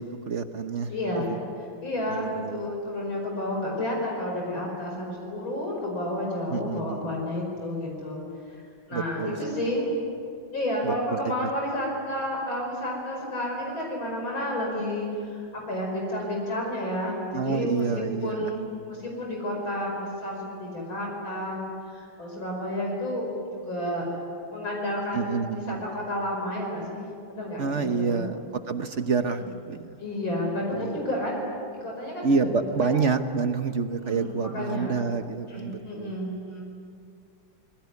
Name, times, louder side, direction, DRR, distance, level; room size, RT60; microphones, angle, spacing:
voice 1, 0.0-1.4 2.1-2.7 6.5-7.2 8.9-9.6 10.8-11.5 17.3-18.5 25.1-25.8 27.6-28.4 28.7-30.0 30.7-31.0 32.2-36.2, right 5 dB, 45° right, 8 dB, 1.0 m, -28 dB
voice 2, 0.9-1.3 1.8-8.2 8.5-8.6 8.9-9.9 10.5-24.1 24.5-28.2 30.0-31.3 31.8-32.5 32.8-33.0 34.0-34.9 35.5-36.6, left 1 dB, 65° left, -1 dB, 6.1 m, -31 dB
26.0 x 22.0 x 9.6 m, 2.4 s
omnidirectional pair, 2.4 m